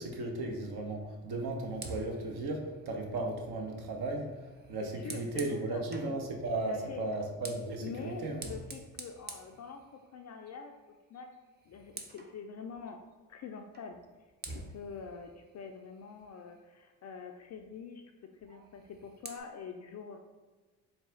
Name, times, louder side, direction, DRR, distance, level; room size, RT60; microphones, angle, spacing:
voice 1, 0.0-8.4, right 2 dB, 55° right, 2 dB, 0.9 m, -36 dB
Fire, 1.7-6.2 7.1-10.3 10.7-11.0 11.3-12.4 13.7-13.9 14.4-16.7 18.6-19.4, right 3 dB, 20° right, 0.6 m, -49 dB
voice 2, 4.8-5.8 6.7-7.1 7.8-10.7 11.1-11.3 11.7-13.0 13.3-14.0 14.5-18.0 18.3-20.2, left 5 dB, 40° left, 4 dB, 0.4 m, -45 dB
4.0 x 2.3 x 3.7 m, 1.3 s
hypercardioid pair, 50°, 47 cm